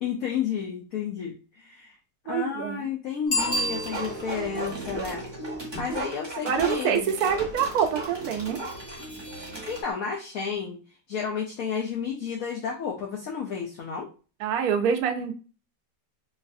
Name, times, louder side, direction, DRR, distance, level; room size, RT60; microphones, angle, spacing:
voice 1, 0.0-1.9 2.2-5.2 5.7-7.1 9.5-10.8 11.1-14.1, left 7 dB, 65° left, -1 dB, 0.9 m, -31 dB
voice 2, 2.3-2.9 6.4-8.6 14.4-15.3, right 7 dB, 70° right, 4 dB, 1.0 m, -26 dB
Bicycle bell, 3.3-4.5 9.9-10.0, equal, 50° left, 1.8 m, -28 dB
sound 1, 3.3-9.8, right 2 dB, 25° right, 0.6 m, -35 dB
3.9 x 2.5 x 2.6 m, 0.35 s
omnidirectional pair, 1.9 m